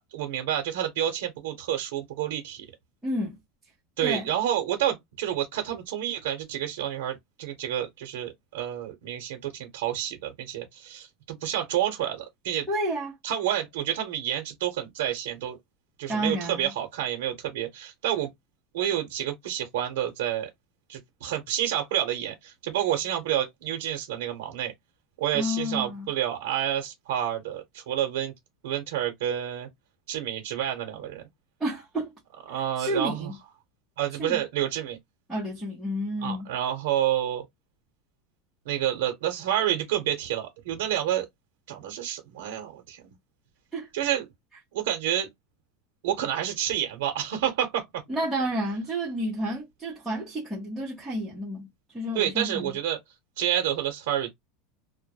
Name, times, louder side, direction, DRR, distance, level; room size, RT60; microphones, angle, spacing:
voice 1, 0.0-2.7 4.0-12.7 13.2-15.6 16.0-18.3 18.7-20.5 20.9-24.7 25.2-28.3 28.6-29.7 30.1-31.2 32.5-33.3 34.0-35.0 36.2-37.4 38.7-41.3 41.7-43.2 43.9-44.3 44.7-45.3 46.0-48.0 52.1-53.0 53.4-54.3, right 11 dB, 80° right, 0.7 m, -29 dB
voice 2, 3.0-3.4 4.0-4.3 12.7-13.1 16.1-16.7 25.3-26.1 31.6-32.1 32.5-33.4 34.2-34.4 35.3-36.5 43.7-43.9 48.1-52.7, equal, ahead, 0.7 m, -30 dB
2.1 x 2.0 x 2.8 m
supercardioid pair, 180°, 0 cm